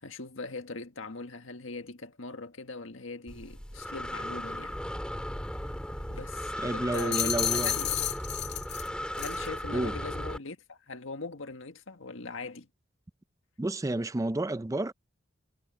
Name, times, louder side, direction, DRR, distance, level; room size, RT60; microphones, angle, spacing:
voice 1, 0.0-4.8 6.1-7.9 9.2-12.7, left 3 dB, 85° left, 1.7 m, -41 dB
Breathing, 3.3-10.4, equal, 5° left, 2.6 m, -36 dB
voice 2, 6.6-7.8 9.7-9.9 13.6-14.9, right 2 dB, 15° right, 0.4 m, -30 dB
sound 1, 6.9-8.9 9.2-9.5, left 11 dB, 60° left, 2.2 m, -31 dB
head